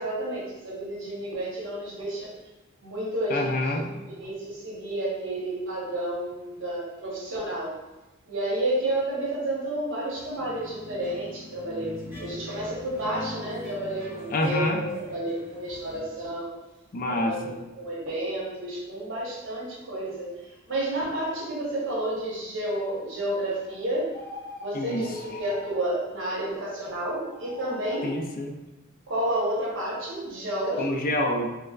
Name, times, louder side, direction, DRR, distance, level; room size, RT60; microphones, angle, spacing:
voice 1, 0.0-2.4 2.8-7.7 8.3-16.5 17.1-20.4 20.7-24.1 24.6-28.1 29.1-31.0, right 1 dB, 65° right, -4 dB, 1.0 m, -31 dB
voice 2, 3.3-3.9 14.3-14.8 16.9-17.4 24.7-25.0 28.0-28.5 30.8-31.5, left 1 dB, 45° left, 3 dB, 0.4 m, -27 dB
sound 1, 10.1-16.0, left 1 dB, 15° right, 1.2 m, -42 dB
sound 2, 24.1-25.9 27.2-28.2, left 2 dB, 15° left, 1.5 m, -43 dB
3.3 x 3.1 x 2.3 m, 1.0 s
head